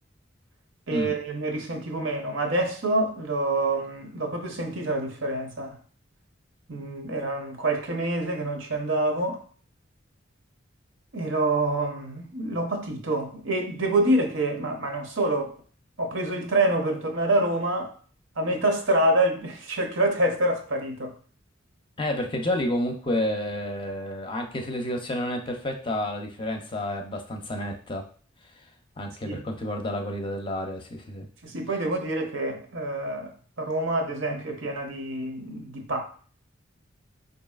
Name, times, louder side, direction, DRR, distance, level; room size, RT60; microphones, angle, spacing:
voice 1, 0.9-5.8 6.7-9.4 11.1-15.5 16.0-17.9 18.4-21.1 29.2-29.4 31.4-36.0, right 2 dB, 75° right, 0.8 m, -26 dB
voice 2, 22.0-28.1 29.0-31.3, left 1 dB, 25° left, 0.5 m, -30 dB
4.7 x 2.7 x 2.4 m
head